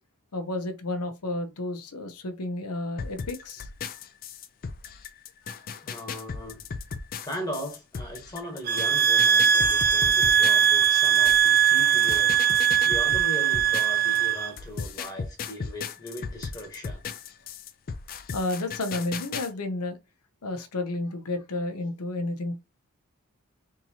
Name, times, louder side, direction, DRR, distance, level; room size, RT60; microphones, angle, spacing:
voice 1, 0.3-3.7 18.3-20.0 20.4-22.5, left 2 dB, 85° left, 0.8 m, -31 dB
sound 1, 3.0-14.2 14.6-19.5, left 5 dB, 40° left, 0.4 m, -36 dB
voice 2, 5.8-6.6 7.2-17.0, equal, 15° left, 1.1 m, -38 dB
sound 2, 8.7-14.5, right 8 dB, 40° right, 0.3 m, -21 dB
3.6 x 2.8 x 2.9 m
head